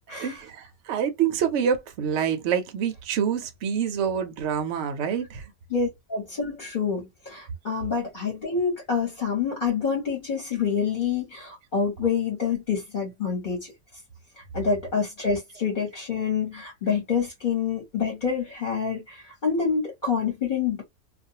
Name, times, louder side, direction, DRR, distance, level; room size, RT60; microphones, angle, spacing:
voice 1, 0.1-5.5, right 8 dB, 65° right, 0.8 m, -27 dB
voice 2, 5.7-13.7 14.5-20.8, left 6 dB, 40° left, 1.0 m, -27 dB
2.4 x 2.2 x 2.7 m
omnidirectional pair, 1.5 m